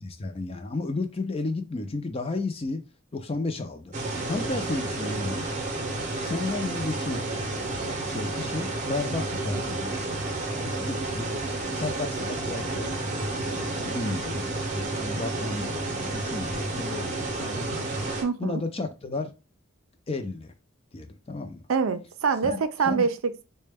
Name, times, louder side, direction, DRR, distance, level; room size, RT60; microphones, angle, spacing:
voice 1, 0.0-2.8 3.1-3.9 4.3-5.5 6.2-7.2 7.8-11.3 11.7-17.9 18.4-19.3 20.1-20.5 20.9-21.6 22.4-22.6 22.9-23.1, left 3 dB, 30° left, 0.5 m, -33 dB
sound 1, 3.9-18.2, right 2 dB, 35° right, 0.7 m, -31 dB
voice 2, 18.2-18.6 21.7-23.4, right 5 dB, 85° right, 0.4 m, -25 dB
4.0 x 2.2 x 3.4 m
head